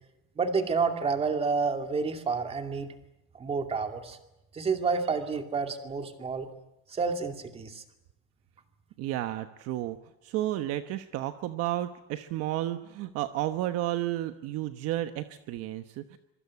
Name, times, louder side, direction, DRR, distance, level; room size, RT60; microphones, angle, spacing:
voice 1, 0.4-2.9 3.3-4.2 4.5-6.5 6.9-7.8, right 4 dB, 20° right, 5 dB, 2.5 m, -29 dB
voice 2, 9.0-10.0 10.2-16.2, right 14 dB, 50° right, 9 dB, 1.2 m, -32 dB
25.5 x 23.5 x 8.5 m, 0.92 s
cardioid pair, 170°, 30 cm